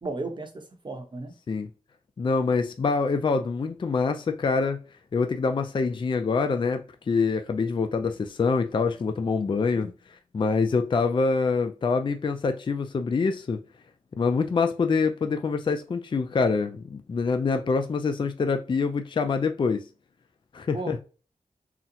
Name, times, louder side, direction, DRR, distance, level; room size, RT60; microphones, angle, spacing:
voice 1, 0.0-1.3 20.7-21.0, right 3 dB, 35° right, 0.8 m, -34 dB
voice 2, 2.2-4.8 5.1-13.6 14.2-19.8 20.5-21.0, left 4 dB, 35° left, 0.3 m, -25 dB
3.9 x 2.0 x 2.7 m
wide cardioid pair, 90°, 14 cm